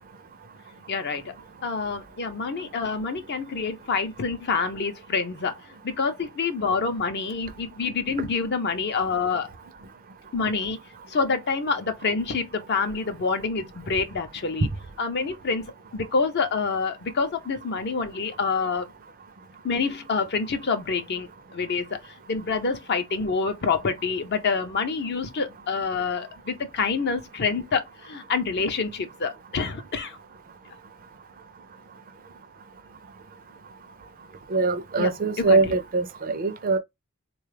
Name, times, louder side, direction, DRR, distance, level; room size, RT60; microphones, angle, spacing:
voice 1, 0.9-1.3 1.6-9.5 10.3-10.8 11.1-14.7 15.0-15.7 15.9-18.9 19.6-30.2 35.0-35.1 35.5-35.8, left 4 dB, 50° left, 0.6 m, -27 dB
voice 2, 34.5-36.8, right 3 dB, 40° right, 0.4 m, -23 dB
3.9 x 2.3 x 3.2 m
head